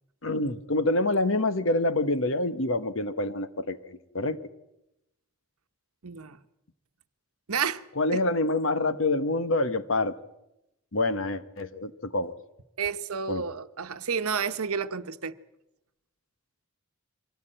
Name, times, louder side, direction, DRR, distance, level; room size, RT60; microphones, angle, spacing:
voice 1, 0.2-4.4 8.0-10.1 10.9-12.3 13.3-13.4, left 2 dB, 65° left, 1.2 m, -26 dB
voice 2, 6.0-6.4 7.5-7.8 8.1-8.2 12.8-15.3, right 6 dB, 90° right, 1.1 m, -30 dB
24.0 x 17.5 x 8.9 m
head